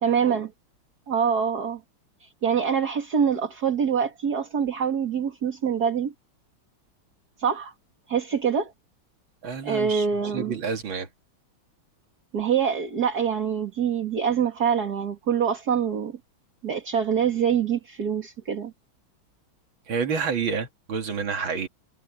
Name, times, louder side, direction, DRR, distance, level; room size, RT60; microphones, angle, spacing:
voice 1, 0.0-0.5 1.1-1.8 2.2-6.1 7.4-7.7 8.1-8.7 9.6-10.6 12.3-16.2 16.6-18.7, right 7 dB, 50° right, 2.6 m, -25 dB
voice 2, 9.4-10.1 10.3-11.1 19.9-21.7, right 5 dB, 70° right, 2.6 m, -28 dB
omnidirectional pair, 2.3 m